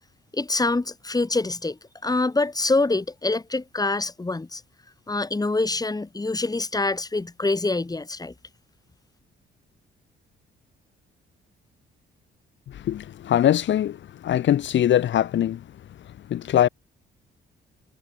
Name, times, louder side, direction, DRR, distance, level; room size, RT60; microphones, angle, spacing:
voice 1, 0.3-4.6 5.1-8.3, left 3 dB, 20° left, 6.2 m, -25 dB
voice 2, 12.7-14.0 14.2-15.6 16.3-16.7, left 11 dB, 70° left, 2.5 m, -21 dB
cardioid pair, 90°, 20 cm